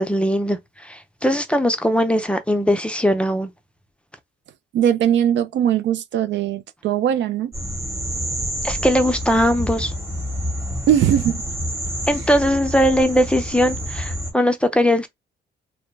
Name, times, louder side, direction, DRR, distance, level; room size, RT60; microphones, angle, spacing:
voice 1, 0.0-3.5 8.6-9.9 12.1-15.1, equal, 5° left, 0.5 m, -20 dB
voice 2, 4.7-7.5 10.9-11.4, right 10 dB, 65° right, 0.4 m, -20 dB
sound 1, 7.5-14.3, equal, 15° right, 1.0 m, -28 dB
2.2 x 2.1 x 3.2 m
cardioid pair, 90°, 20 cm